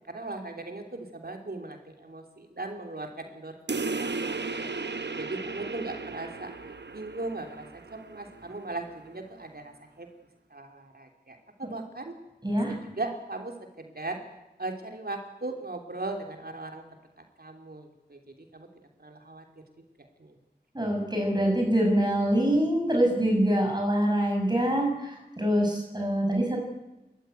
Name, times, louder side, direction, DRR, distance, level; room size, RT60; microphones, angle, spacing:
voice 1, 0.1-4.7 5.2-6.5 6.9-10.1 10.5-12.1 12.7-14.2 14.6-16.8 17.4-18.7 19.0-19.4 20.2-20.4, right 2 dB, 60° right, 3 dB, 3.1 m, -38 dB
sound 1, 3.7-8.7, right 3 dB, 80° right, 1.1 m, -35 dB
voice 2, 12.4-12.7 20.7-26.6, equal, 25° right, 1 dB, 6.1 m, -25 dB
29.5 x 14.0 x 9.1 m, 0.97 s
wide cardioid pair, 55°, 18 cm